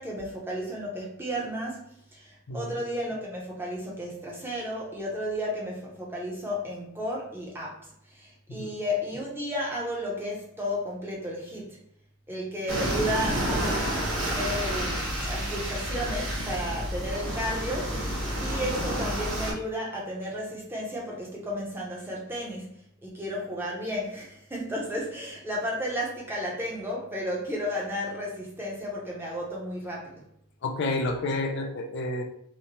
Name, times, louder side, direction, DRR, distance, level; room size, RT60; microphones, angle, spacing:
voice 1, 0.0-1.8 2.1-11.8 12.3-22.7 23.0-30.2, equal, 10° right, -4 dB, 0.6 m, -33 dB
sound 1, 12.7-19.5, equal, 65° right, 0.9 m, -30 dB
voice 2, 30.6-32.2, left 2 dB, 55° left, 4 dB, 0.4 m, -30 dB
2.8 x 2.0 x 2.9 m, 0.66 s
head